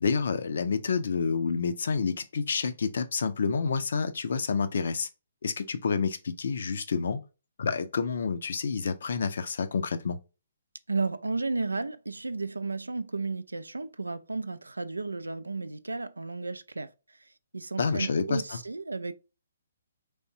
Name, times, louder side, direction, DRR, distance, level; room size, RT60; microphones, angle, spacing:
voice 1, 0.0-5.1 5.4-7.2 7.6-10.2 17.8-18.6, left 5 dB, 55° left, 0.5 m, -29 dB
voice 2, 10.9-19.1, right 3 dB, 80° right, 0.3 m, -33 dB
3.5 x 3.4 x 2.6 m
figure-of-eight pair, 130°, 0 cm